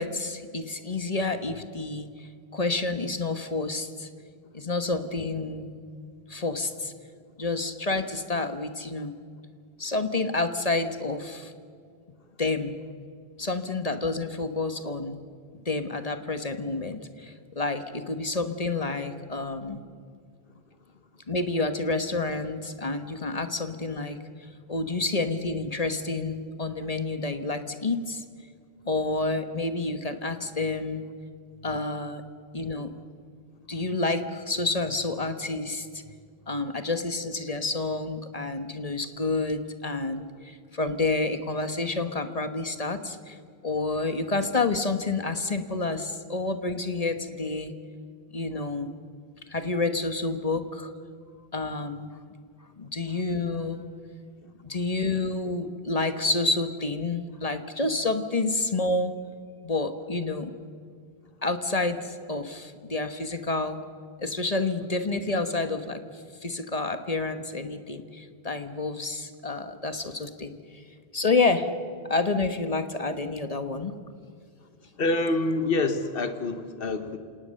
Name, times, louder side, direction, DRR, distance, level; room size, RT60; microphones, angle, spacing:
voice 1, 0.0-4.1 4.5-5.7 6.3-6.9 7.4-9.1 9.8-11.5 12.4-12.8 13.4-15.2 15.5-19.8 21.3-24.2 24.7-28.2 28.8-31.0 31.6-32.2 32.5-32.9 33.7-36.0 36.5-43.4 43.6-47.7 48.3-48.9 49.5-50.9 51.5-52.1 52.8-53.8 54.6-59.1 59.6-60.5 61.4-63.8 64.2-66.0 66.4-70.6 71.1-71.7 72.1-74.0, left 3 dB, 40° left, 9 dB, 1.3 m, -29 dB
voice 2, 75.0-77.2, left 2 dB, 65° left, 9 dB, 1.5 m, -26 dB
27.5 x 18.5 x 6.6 m, 2.2 s
omnidirectional pair, 1.0 m